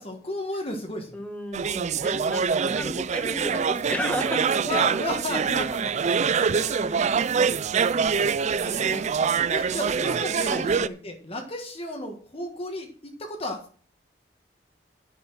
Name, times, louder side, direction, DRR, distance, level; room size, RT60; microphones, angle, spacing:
voice 1, 0.0-1.2 4.6-6.5 6.9-7.3 8.6-9.1 9.5-12.9 13.2-13.6, left 1 dB, 35° left, 3 dB, 1.6 m, -33 dB
voice 2, 1.1-4.5 6.5-7.1 10.4-10.6, equal, 10° left, 3 dB, 1.9 m, -33 dB
sound 1, 1.5-10.9, right 6 dB, 40° right, 0.4 m, -25 dB
9.9 x 6.9 x 6.2 m, 0.42 s
head